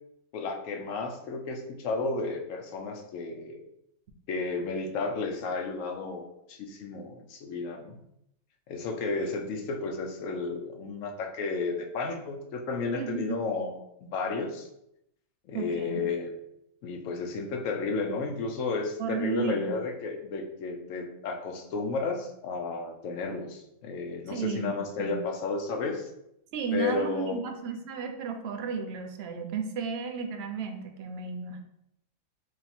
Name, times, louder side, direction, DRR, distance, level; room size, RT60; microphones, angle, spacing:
voice 1, 0.3-3.6 4.3-8.0 8.7-14.7 15.5-16.3 16.8-26.1 26.7-27.4, left 4 dB, 70° left, 3 dB, 0.9 m, -32 dB
voice 2, 12.9-13.4 15.5-16.0 19.0-19.8 24.3-25.2 26.5-31.6, right 5 dB, 65° right, 5 dB, 0.6 m, -33 dB
3.1 x 2.8 x 4.2 m, 0.79 s
omnidirectional pair, 1.5 m